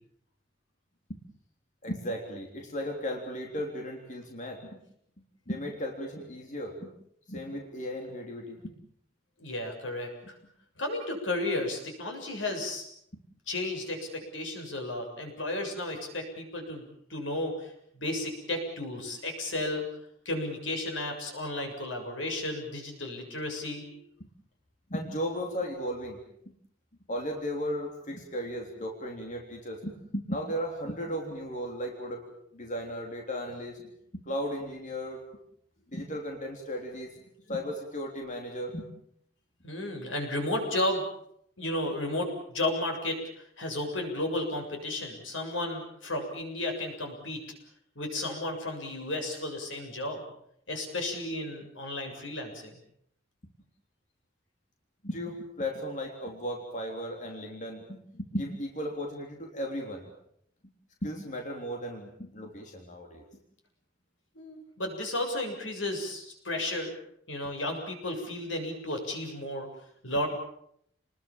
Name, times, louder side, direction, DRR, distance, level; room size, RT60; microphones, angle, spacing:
voice 1, 1.8-4.8 5.5-6.9 7.3-8.7 24.9-26.2 27.1-32.2 32.5-35.2 35.9-37.1 37.5-38.9 55.0-60.1 61.0-63.2, equal, 40° left, 1 dB, 3.6 m, -35 dB
voice 2, 9.4-10.4 10.8-12.9 13.5-19.9 20.3-24.0 39.6-41.0 41.6-47.4 48.0-50.2 50.7-52.8 64.3-67.0 67.3-69.7 70.0-70.3, left 1 dB, 85° left, 3 dB, 7.3 m, -33 dB
29.5 x 21.0 x 7.4 m, 0.71 s
head